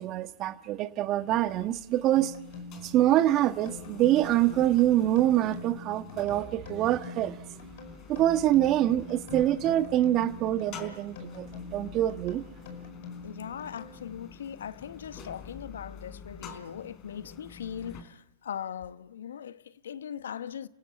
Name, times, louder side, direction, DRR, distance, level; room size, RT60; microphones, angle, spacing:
voice 1, 0.0-2.3 2.7-7.3 8.1-12.4, right 13 dB, 35° right, 1.4 m, -25 dB
sound 1, 1.3-18.0, left 6 dB, 35° left, 4.2 m, -48 dB
sound 2, 2.2-14.3, left 4 dB, 60° left, 5.2 m, -45 dB
voice 2, 13.2-20.7, left 9 dB, 75° left, 1.0 m, -40 dB
29.0 x 17.0 x 9.7 m
hypercardioid pair, 115°, 0 cm